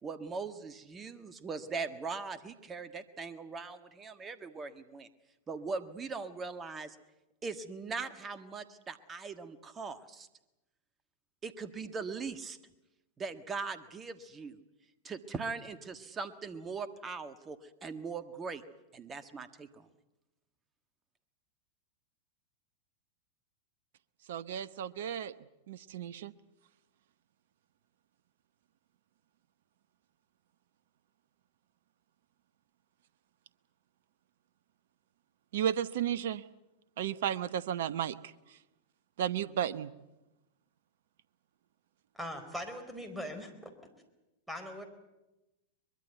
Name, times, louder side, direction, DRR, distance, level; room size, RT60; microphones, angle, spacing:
voice 1, 0.0-5.1 5.5-6.9 7.4-10.3 11.4-12.6 13.2-14.6 15.0-18.6 18.9-19.9, right 4 dB, 25° right, 11 dB, 1.5 m, -40 dB
voice 2, 24.3-25.3 25.7-26.3 35.5-36.4 37.0-38.2 39.2-39.9, right 10 dB, 65° right, 17 dB, 0.9 m, -33 dB
voice 3, 42.1-43.7 44.5-44.8, equal, 5° right, 7 dB, 4.4 m, -40 dB
23.0 x 22.0 x 8.1 m, 0.99 s
figure-of-eight pair, 95°, 0 cm